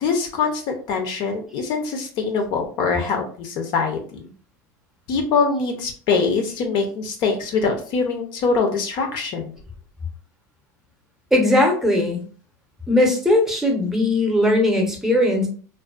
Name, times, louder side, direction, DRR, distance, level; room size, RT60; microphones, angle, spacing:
voice 1, 0.0-4.0 5.1-9.5, left 4 dB, 55° left, 4 dB, 0.5 m, -23 dB
voice 2, 11.3-12.2 12.9-15.5, left 1 dB, 5° right, 1 dB, 0.7 m, -19 dB
2.4 x 2.3 x 2.2 m, 0.43 s
supercardioid pair, 115°, 10 cm